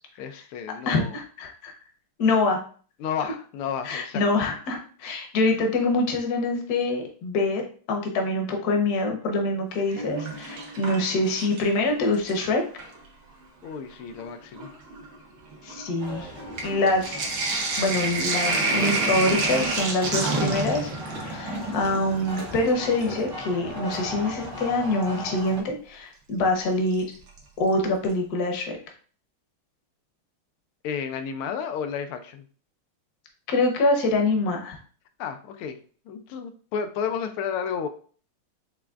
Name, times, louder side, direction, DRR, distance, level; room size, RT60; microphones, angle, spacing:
voice 1, 0.2-1.2 3.0-4.2 13.6-14.8 30.8-32.5 35.2-35.8 36.1-37.9, left 7 dB, 90° left, 7 dB, 1.5 m, -32 dB
voice 2, 0.9-1.7 2.2-2.6 3.8-7.6 7.9-12.6 15.6-16.3 16.6-17.3 17.8-20.9 21.2-27.1 27.6-28.8 33.5-34.8, left 2 dB, 55° left, 2 dB, 1.2 m, -25 dB
Sink (filling or washing), 9.8-11.8 12.1-13.0 13.8-13.9 14.1-23.3 25.0-25.1 26.9-27.4 27.7-27.8 28.0-28.1, right 3 dB, 60° right, 1.3 m, -29 dB
sound 1, 16.0-25.6, equal, 20° right, 0.5 m, -37 dB
5.8 x 3.3 x 2.4 m, 0.43 s
omnidirectional pair, 2.3 m